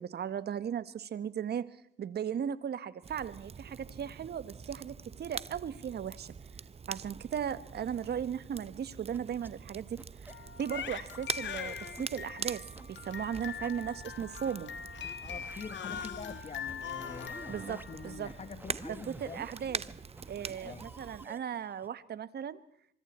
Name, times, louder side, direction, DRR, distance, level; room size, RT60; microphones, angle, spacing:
voice 1, 0.0-1.7 2.0-6.3 6.9-10.3 10.6-14.7 17.5-18.3 19.1-19.8 20.3-22.6, right 8 dB, 55° right, 15 dB, 1.3 m, -37 dB
Crackle, 3.0-21.3, right 6 dB, 30° right, 0.7 m, -44 dB
sound 1, 9.1-9.5 10.0-10.3 10.8-11.2 11.6-12.0 12.4-12.9 13.2-13.7 14.1-14.5 15.0-21.9, right 2 dB, 10° right, 1.1 m, -51 dB
Crying sobbing, 10.3-18.5, left 8 dB, 65° left, 1.6 m, -42 dB
voice 2, 15.2-19.5 20.6-20.9, left 6 dB, 35° left, 13 dB, 1.0 m, -46 dB
25.5 x 23.5 x 4.3 m, 0.69 s
cardioid pair, 90°, 20 cm